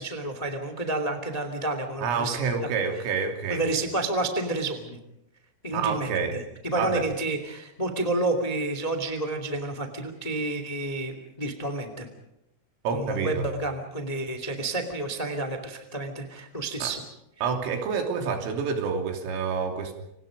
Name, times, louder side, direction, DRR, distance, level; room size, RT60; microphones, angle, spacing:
voice 1, 0.0-2.4 3.5-5.0 5.6-12.1 12.9-17.0, right 2 dB, 20° left, 7 dB, 1.0 m, -30 dB
voice 2, 2.0-3.6 5.7-6.4 6.8-7.0 12.9-13.5 16.8-16.9 17.4-19.9, right 5 dB, 80° right, 4 dB, 5.7 m, -28 dB
29.5 x 26.0 x 5.2 m, 0.83 s
omnidirectional pair, 5.8 m